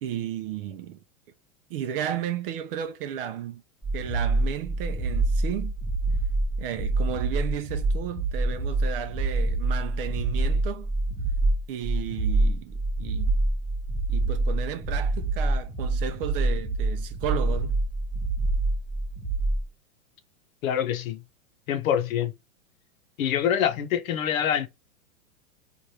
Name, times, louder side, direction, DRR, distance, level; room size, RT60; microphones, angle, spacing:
voice 1, 0.0-1.0 1.7-3.6 3.9-5.7 6.6-10.9 11.7-13.3 14.1-17.8, right 10 dB, 45° right, 0.5 m, -33 dB
sound 1, 3.8-19.7, right 2 dB, ahead, 0.6 m, -26 dB
voice 2, 20.6-21.2 21.7-22.3 23.2-24.7, left 9 dB, 70° left, 0.8 m, -25 dB
3.2 x 2.5 x 2.7 m
hypercardioid pair, 140°, 42 cm